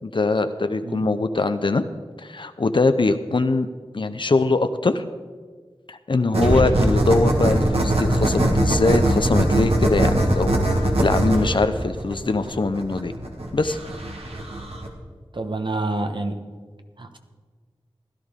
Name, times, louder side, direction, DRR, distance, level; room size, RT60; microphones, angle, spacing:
voice 1, 0.0-1.8 2.2-3.7 3.9-5.0 5.9-13.1 13.5-13.8, left 3 dB, 55° left, 9 dB, 0.6 m, -22 dB
sound 1, 6.3-14.9, right 1 dB, 85° right, 1.7 m, -21 dB
voice 2, 15.3-16.4 17.0-17.2, right 2 dB, 55° right, 6 dB, 1.1 m, -27 dB
16.0 x 12.0 x 3.7 m, 1.5 s
wide cardioid pair, 50°, 10 cm